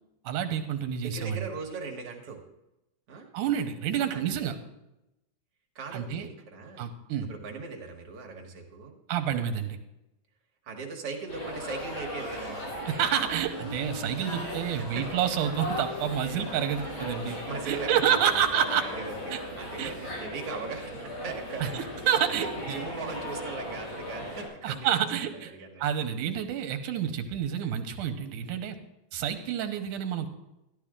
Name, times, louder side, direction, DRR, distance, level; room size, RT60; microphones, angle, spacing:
voice 1, 0.2-1.5 3.3-4.6 5.9-6.3 6.8-7.3 9.1-9.8 12.9-17.4 17.7-18.9 19.3-19.4 19.8-19.9 21.6-22.8 24.6-25.5 25.8-28.8 29.1-30.3, right 9 dB, 85° right, 7 dB, 2.5 m, -29 dB
voice 2, 1.0-2.4 3.1-3.3 4.0-4.3 5.8-6.9 7.3-9.0 10.6-12.7 14.6-15.0 17.5-18.4 18.7-21.8 22.4-24.9 25.3-25.8, right 4 dB, 55° right, 1 dB, 2.2 m, -39 dB
sound 1, 11.3-24.5, left 1 dB, 75° left, 6.2 m, -37 dB
13.5 x 11.5 x 3.7 m, 0.92 s
omnidirectional pair, 3.6 m